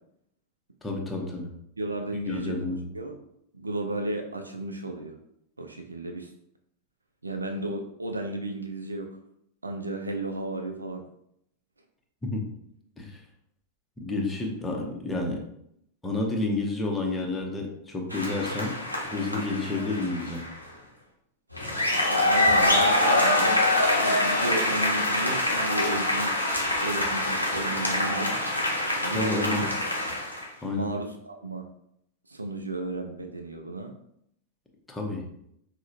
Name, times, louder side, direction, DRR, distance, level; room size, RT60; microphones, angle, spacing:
voice 1, 0.8-1.5 2.3-2.9 12.2-12.4 13.0-13.2 14.0-15.4 16.0-18.8 19.1-20.4 29.1-29.7 30.6-30.9 34.9-35.3, left 2 dB, 10° left, 0 dB, 0.7 m, -30 dB
voice 2, 1.8-3.2 3.5-5.2 5.6-6.3 7.2-9.1 9.6-11.0 22.1-23.6 23.9-26.3 26.8-28.4 29.0-29.7 30.7-31.7 32.3-33.9, right 2 dB, 80° right, 4 dB, 0.3 m, -33 dB
sound 1, 18.1-20.6 21.5-30.5, left 1 dB, 90° left, 0.7 m, -25 dB
4.8 x 2.1 x 2.6 m, 0.74 s
figure-of-eight pair, 90°, 0 cm